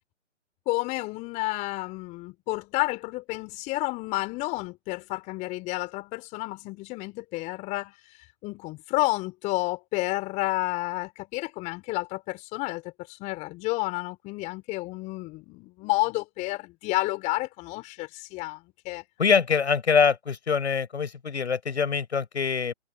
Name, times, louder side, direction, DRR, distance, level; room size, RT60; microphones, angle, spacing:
voice 1, 0.7-19.0, left 21 dB, 20° left, 4.0 m, -31 dB
voice 2, 19.2-22.7, left 6 dB, 65° left, 7.1 m, -24 dB
figure-of-eight pair, 140°, 37 cm